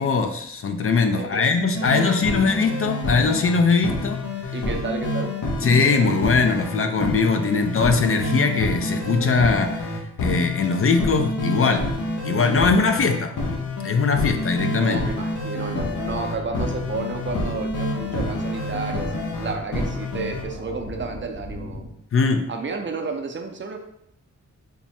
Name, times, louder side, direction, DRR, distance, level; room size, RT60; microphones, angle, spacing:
voice 1, 0.0-4.2 5.6-11.9 12.2-13.3 13.8-15.0 22.1-22.5, left 4 dB, 50° left, 6 dB, 0.4 m, -21 dB
sound 1, 1.7-20.4, left 2 dB, 85° left, 0.8 m, -28 dB
voice 2, 1.8-2.4 4.5-5.3 14.8-21.8 22.5-23.8, right 4 dB, 40° right, 4 dB, 0.5 m, -32 dB
sound 2, 15.3-22.0, equal, 70° left, 1.1 m, -38 dB
3.5 x 2.1 x 4.2 m, 0.74 s
cardioid pair, 75°, 29 cm